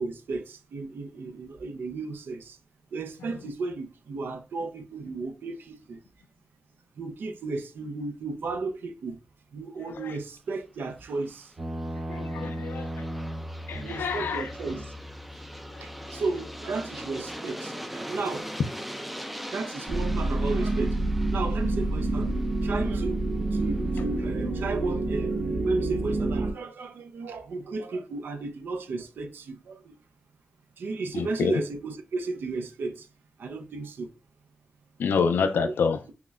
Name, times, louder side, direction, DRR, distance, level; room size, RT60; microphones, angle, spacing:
voice 1, 0.0-2.6 2.9-6.0 7.0-9.2 9.5-11.5 13.8-14.9 15.8-18.5 19.5-21.0 21.3-23.2 23.5-30.0 30.8-33.1 33.4-34.1 35.5-35.7, right 3 dB, 80° right, 0.5 m, -34 dB
Aircraft, 11.0-23.8, equal, 5° right, 0.3 m, -42 dB
sound 1, 11.6-17.3, equal, 65° right, 2.0 m, -38 dB
voice 2, 12.1-12.9 13.7-14.5 31.1-31.6 35.0-36.0, left 5 dB, 85° left, 0.4 m, -27 dB
sound 2, 19.9-26.5, right 2 dB, 40° right, 0.9 m, -27 dB
5.6 x 2.1 x 2.3 m
cardioid pair, 80°, 3 cm